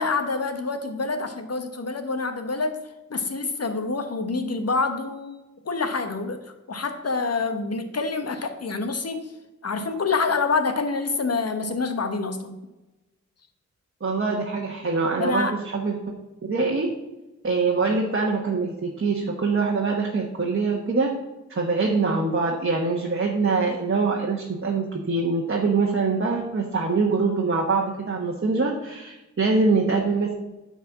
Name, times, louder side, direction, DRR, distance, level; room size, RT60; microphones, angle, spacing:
voice 1, 0.0-2.8 3.1-5.4 5.6-6.4 6.7-9.3 9.6-12.6 15.2-15.5, left 4 dB, 55° left, 7 dB, 1.2 m, -26 dB
voice 2, 14.0-16.0 16.5-16.9 17.4-21.2 21.5-30.3, right 4 dB, 45° right, -1 dB, 1.2 m, -24 dB
10.0 x 4.2 x 7.3 m, 1.0 s
wide cardioid pair, 95°, 30 cm